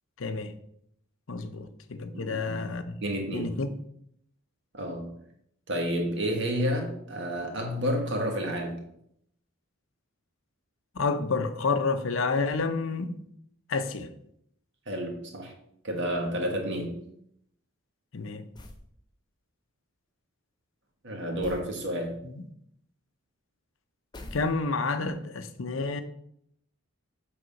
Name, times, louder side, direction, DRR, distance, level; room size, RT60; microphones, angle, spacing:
voice 1, 0.2-0.5 1.3-3.0 3.3-3.7 10.9-13.2 13.7-14.1 18.1-18.5 22.2-22.4 24.3-26.0, left 4 dB, 65° left, 0.6 m, -29 dB
voice 2, 2.1-2.7 3.0-3.5 4.7-5.1 5.7-8.8 14.9-15.5 15.8-16.9 21.0-22.2, equal, 55° right, 1.5 m, -30 dB
sound 1, 18.5-18.9 21.4-21.7 24.1-24.9, left 1 dB, 20° left, 0.6 m, -44 dB
7.6 x 3.6 x 5.2 m
head